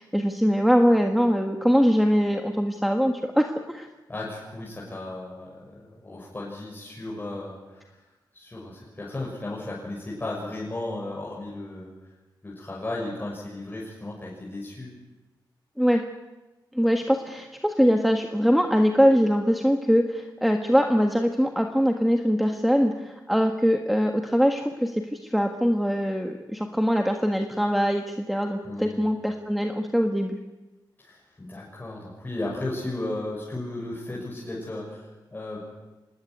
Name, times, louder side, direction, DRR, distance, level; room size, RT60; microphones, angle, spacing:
voice 1, 0.0-3.9 15.8-16.0 16.7-30.4, equal, ahead, 4 dB, 1.6 m, -22 dB
voice 2, 4.1-8.0 8.3-11.9 12.4-14.9 28.6-29.0 31.0-35.7, left 2 dB, 25° left, -4 dB, 6.4 m, -35 dB
25.5 x 20.0 x 9.6 m, 1.1 s
wide cardioid pair, 130°, 8 cm